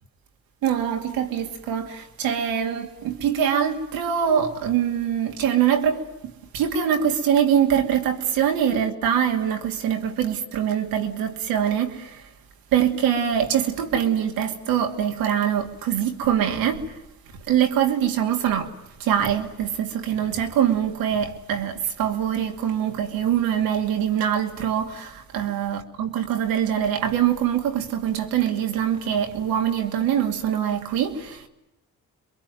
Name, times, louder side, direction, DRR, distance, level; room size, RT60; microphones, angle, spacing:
voice 1, 0.6-12.2 12.7-17.0 17.5-18.7 19.0-31.5, right 9 dB, 90° right, 2.5 m, -23 dB
27.0 x 23.0 x 9.2 m
supercardioid pair, 60°, 34 cm